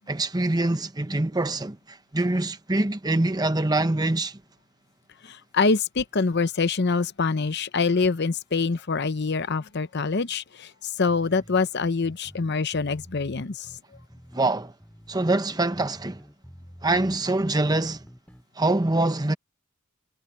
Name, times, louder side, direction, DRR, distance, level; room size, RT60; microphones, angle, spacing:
voice 1, 0.1-4.4 14.3-14.7 15.1-16.2 16.8-18.0 18.6-19.3, right 2 dB, 20° right, 0.9 m, -24 dB
voice 2, 5.2-13.8, left 4 dB, 50° left, 0.7 m, -25 dB
sound 1, 11.1-18.5, equal, 5° left, 2.3 m, -48 dB
head